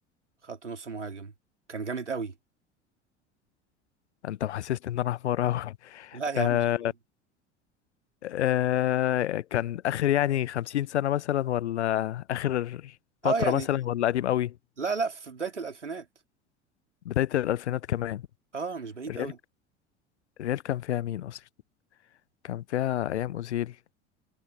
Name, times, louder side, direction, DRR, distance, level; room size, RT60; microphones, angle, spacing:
voice 1, 0.4-1.3 1.7-2.3 6.1-6.9 13.2-13.7 14.8-16.1 18.5-19.4, right 4 dB, 85° right, 4.0 m, -32 dB
voice 2, 4.2-6.9 8.2-12.9 13.2-14.5 17.0-18.2 19.1-19.3 20.4-21.4 22.4-23.7, left 12 dB, 70° left, 0.8 m, -28 dB
figure-of-eight pair, 70°, 35 cm